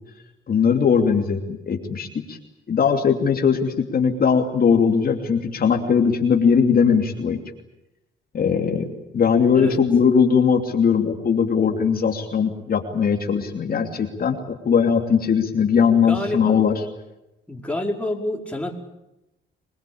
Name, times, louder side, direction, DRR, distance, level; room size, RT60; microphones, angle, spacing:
voice 1, 0.5-1.4 1.7-2.4 2.7-7.4 8.3-16.7, left 6 dB, 50° left, 3 dB, 2.9 m, -19 dB
voice 2, 16.0-16.6 17.5-18.8, left 1 dB, 5° left, 1 dB, 4.9 m, -28 dB
26.5 x 21.0 x 8.8 m, 0.91 s
cardioid pair, 90°, 20 cm